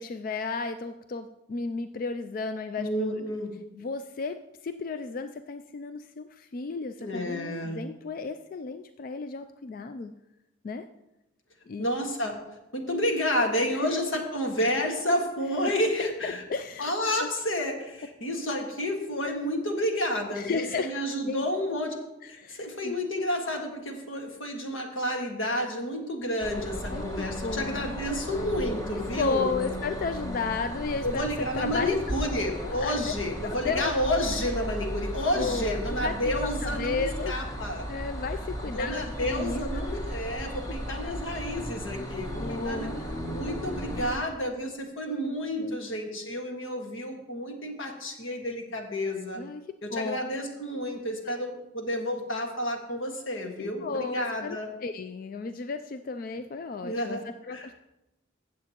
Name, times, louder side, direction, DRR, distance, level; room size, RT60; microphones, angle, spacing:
voice 1, 0.0-3.2 3.7-10.1 10.6-10.8 11.7-11.9 13.8-14.2 16.0-16.9 17.2-17.3 20.3-21.5 22.2-23.0 26.9-27.9 28.9-32.0 32.3-33.1 33.4-33.9 35.3-37.5 37.9-39.9 42.0-42.1 42.4-43.2 44.0-44.3 45.0-45.8 49.4-49.6 49.9-50.2 51.3-51.4 53.6-57.7, left 4 dB, 45° left, 9 dB, 0.3 m, -34 dB
voice 2, 2.8-3.5 7.0-7.8 11.8-12.4 12.7-16.4 16.8-22.0 22.3-29.6 31.0-37.9 38.7-42.9 43.3-49.4 49.8-54.7 56.8-57.2 57.5-57.7, left 1 dB, 90° left, 2 dB, 1.7 m, -30 dB
sound 1, 26.4-44.2, equal, 20° left, 1.0 m, -35 dB
15.5 x 7.4 x 2.9 m, 0.95 s
head